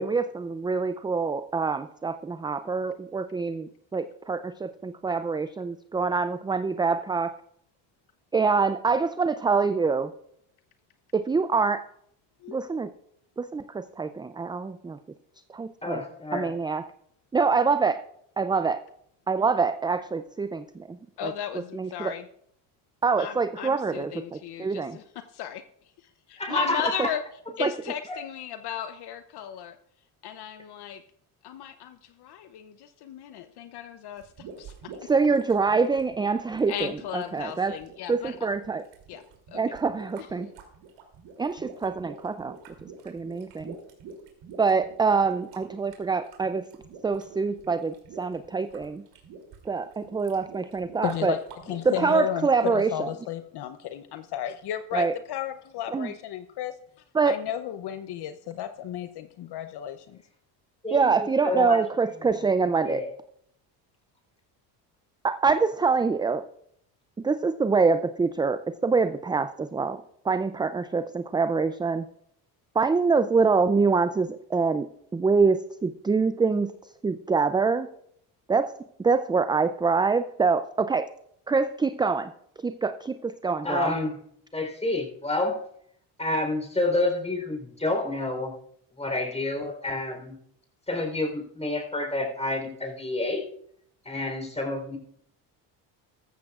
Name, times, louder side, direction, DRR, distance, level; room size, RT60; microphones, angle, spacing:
voice 1, 0.0-7.3 8.3-10.1 11.1-11.8 12.5-12.9 13.4-15.0 15.5-16.0 16.3-16.8 17.3-18.0 18.4-18.8 19.3-21.3 21.7-22.1 23.0-25.0 26.5-26.6 27.6-27.7 35.0-37.8 38.1-38.8 39.5-40.5 41.4-42.6 43.1-43.7 44.6-46.7 47.0-49.0 49.7-51.3 51.8-53.1 54.9-55.1 55.9-56.1 57.1-57.4 60.9-63.0 65.2-66.4 67.2-72.1 72.7-77.9 78.5-78.7 79.0-81.1 81.5-82.3 82.6-83.9, right 4 dB, 10° right, 10 dB, 0.3 m, -25 dB
voice 2, 15.8-16.5 26.4-27.0 28.1-28.2 60.8-61.8 62.8-63.1 83.6-84.2 84.5-85.6 86.2-88.5 89.0-90.4 90.9-93.5 94.0-95.0, left 2 dB, 15° left, 3 dB, 3.7 m, -29 dB
voice 3, 21.2-22.2 23.2-25.0 25.3-25.6 26.3-27.2 27.6-29.8 30.2-31.0 31.4-34.2 34.6-34.7 36.7-38.4 39.1-39.2 39.5-39.6 51.0-51.4 51.7-56.8 57.2-60.2, left 11 dB, 60° left, 10 dB, 0.8 m, -34 dB
sound 1, 34.1-51.9, right 5 dB, 70° right, 3.0 m, -47 dB
14.0 x 13.5 x 2.4 m, 0.70 s
supercardioid pair, 90°, 45 cm